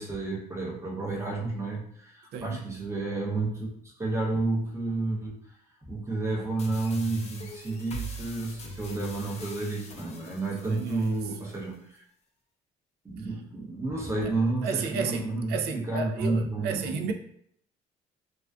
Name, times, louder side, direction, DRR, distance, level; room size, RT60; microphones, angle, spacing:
voice 1, 0.0-3.7 4.0-5.6 5.8-12.0 13.0-16.9, right 3 dB, 15° right, -2 dB, 0.6 m, -31 dB
voice 2, 2.3-2.6 10.7-11.2 13.2-13.3 14.2-14.3 14.6-17.1, right 5 dB, 75° right, 4 dB, 0.4 m, -33 dB
sound 1, 6.6-11.6, equal, 40° left, 0.5 m, -42 dB
2.4 x 2.3 x 2.2 m, 0.67 s
cardioid pair, 110°, 17 cm